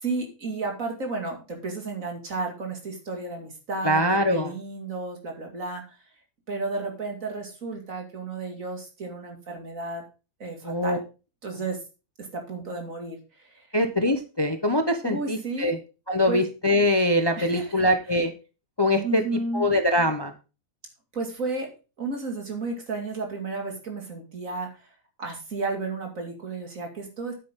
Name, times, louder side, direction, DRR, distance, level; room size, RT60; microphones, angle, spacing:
voice 1, 0.0-4.0 4.3-5.8 6.5-10.0 10.4-11.0 11.4-11.8 12.2-13.6 15.0-15.7 16.3-16.4 17.4-17.8 19.0-19.6 21.1-21.7 22.0-24.7 25.2-27.3, right 3 dB, 65° right, 2 dB, 2.9 m, -32 dB
voice 2, 3.8-4.5 10.6-11.0 13.7-15.8 16.1-18.3 18.8-19.2 19.5-20.3, left 1 dB, 20° left, 7 dB, 0.8 m, -23 dB
9.4 x 8.6 x 3.7 m, 0.31 s
omnidirectional pair, 1.5 m